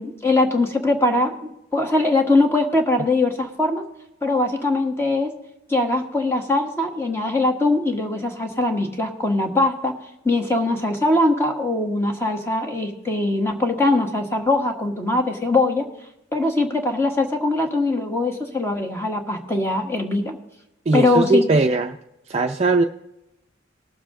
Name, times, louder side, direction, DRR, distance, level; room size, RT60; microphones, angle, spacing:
voice 1, 0.0-3.8 4.2-5.3 5.7-9.9 10.2-15.9 16.3-20.4 20.9-21.5, left 2 dB, 15° left, 3 dB, 1.3 m, -21 dB
voice 2, 20.9-22.0 22.3-22.8, right 3 dB, 30° right, 3 dB, 0.5 m, -19 dB
19.5 x 7.1 x 3.7 m, 0.86 s
head